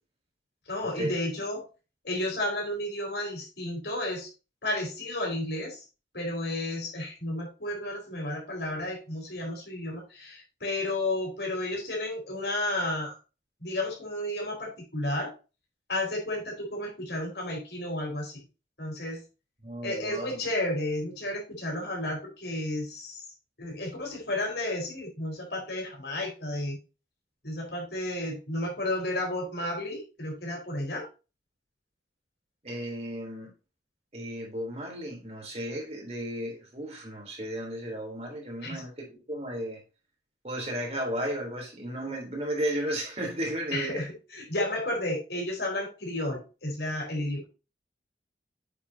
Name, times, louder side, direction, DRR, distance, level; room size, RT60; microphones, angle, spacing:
voice 1, 0.7-1.6 2.0-4.3 4.6-5.9 6.1-13.2 13.6-15.3 15.9-18.4 18.8-19.2 19.8-23.2 23.6-26.8 27.4-31.1 38.6-38.8 43.7-47.4, left 1 dB, 75° left, 4.5 m, -32 dB
voice 2, 19.6-20.4 32.6-33.5 34.1-39.8 40.4-44.0, right 1 dB, 35° right, 3.6 m, -34 dB
8.4 x 7.3 x 2.8 m
head